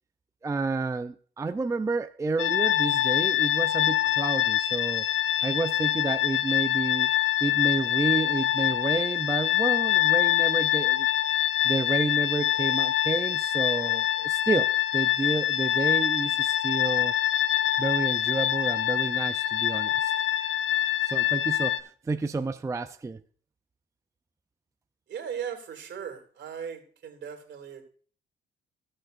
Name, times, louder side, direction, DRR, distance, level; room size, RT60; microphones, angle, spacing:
voice 1, 0.4-5.1 5.4-7.1 7.4-11.1 11.6-17.1 17.8-20.1 21.0-23.2, right 3 dB, 15° right, 0.4 m, -30 dB
sound 1, 2.4-21.8, left 12 dB, 70° left, 0.5 m, -25 dB
voice 2, 25.1-27.8, right 8 dB, 60° right, 2.4 m, -38 dB
15.5 x 6.3 x 2.5 m
cardioid pair, 90°, 20 cm